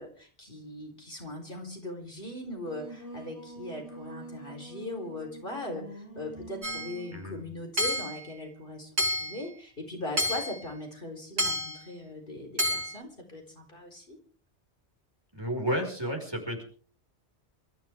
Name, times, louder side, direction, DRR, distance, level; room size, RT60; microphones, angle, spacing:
voice 1, 0.0-8.9 9.2-14.2, left 1 dB, 50° left, 2 dB, 4.3 m, -39 dB
Singing, 2.4-7.2, right 2 dB, 75° left, 5.8 m, -45 dB
Hammer / Chink clink, 6.6-7.0 7.8-8.2 9.0-9.4 10.2-10.6 11.4-11.8 12.6-13.0, equal, 65° right, 3.3 m, -29 dB
voice 2, 7.1-7.4 15.3-16.6, equal, 20° right, 2 dB, 5.3 m, -32 dB
28.5 x 14.5 x 3.6 m, 0.42 s
omnidirectional pair, 1.2 m